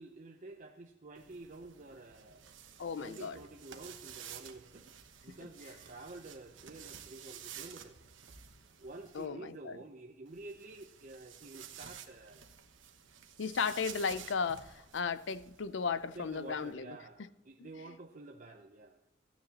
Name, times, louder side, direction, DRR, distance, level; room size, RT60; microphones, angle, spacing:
voice 1, 0.0-2.5 3.0-4.9 5.2-8.0 8.8-12.4 16.1-19.0, right 2 dB, 40° right, 0.7 m, -50 dB
sound 1, 1.1-9.3 10.3-16.7, right 8 dB, 75° right, 1.1 m, -52 dB
voice 2, 2.8-3.4 9.1-9.8 13.4-17.0 17.6-17.7, left 5 dB, 65° left, 0.5 m, -35 dB
15.0 x 9.6 x 2.9 m
head